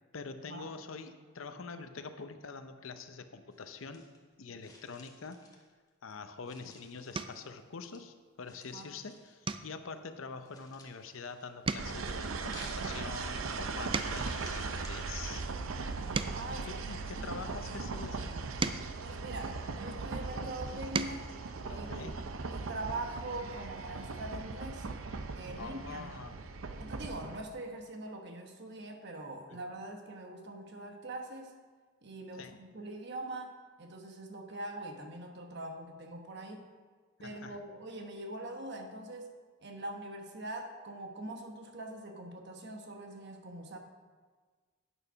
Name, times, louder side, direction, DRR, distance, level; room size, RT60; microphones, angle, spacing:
voice 1, 0.1-4.0 4.4-5.4 6.0-15.4 16.6-18.4 21.7-22.2 25.6-26.4 29.5-29.9 32.3-32.5 37.2-37.6, left 4 dB, 90° left, 9 dB, 0.7 m, -45 dB
sound 1, 3.5-4.3 4.6-6.1 6.4-8.0 8.4-9.6 9.9-11.9 12.3-14.9, left 3 dB, 20° left, 1.3 m, -56 dB
sound 2, 6.3-6.5 7.1-7.5 8.0-8.4 8.7-8.9 9.4-11.2 11.5-14.4 15.1-17.5 18.2-20.0 20.6-21.3 22.7-22.8 23.1-23.3, right 4 dB, 25° right, 0.3 m, -40 dB
sound 3, 11.8-27.4, right 4 dB, 90° right, 0.6 m, -39 dB
voice 2, 16.3-16.8 17.1-17.4 19.0-21.3 21.7-22.1 22.5-24.9 25.3-26.1 26.8-31.6 32.0-36.7 37.2-39.3 39.6-43.8, right 2 dB, 60° right, 4 dB, 1.1 m, -43 dB
8.9 x 6.8 x 5.7 m, 1.5 s
head